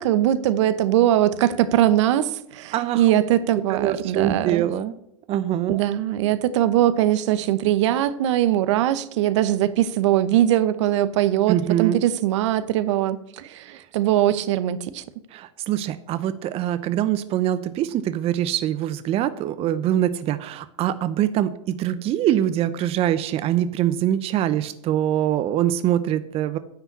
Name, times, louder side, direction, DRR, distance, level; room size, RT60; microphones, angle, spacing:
voice 1, 0.0-4.7 5.7-15.0, right 12 dB, 65° right, 0.9 m, -21 dB
voice 2, 2.7-3.2 3.7-4.9 5.3-5.8 11.5-12.0 15.3-26.6, right 11 dB, 35° right, 0.7 m, -24 dB
10.0 x 5.7 x 8.5 m
hypercardioid pair, 105°, 16 cm